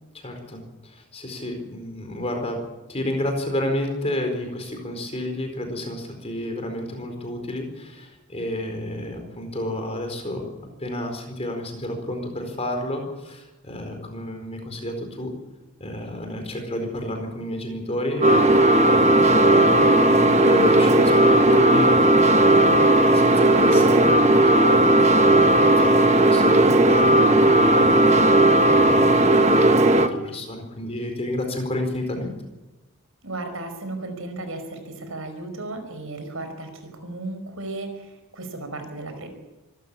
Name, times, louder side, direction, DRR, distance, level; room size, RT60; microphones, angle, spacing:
voice 1, 0.1-2.6 2.9-10.4 10.8-15.3 15.8-18.5 19.1-24.8 25.2-28.2 28.7-32.4, left 1 dB, 25° left, 4 dB, 4.5 m, -30 dB
sound 1, 18.2-30.1, right 1 dB, 30° right, 1.2 m, -16 dB
voice 2, 33.2-39.3, right 2 dB, 65° right, 7 dB, 5.2 m, -35 dB
25.5 x 14.0 x 8.8 m, 1.1 s
head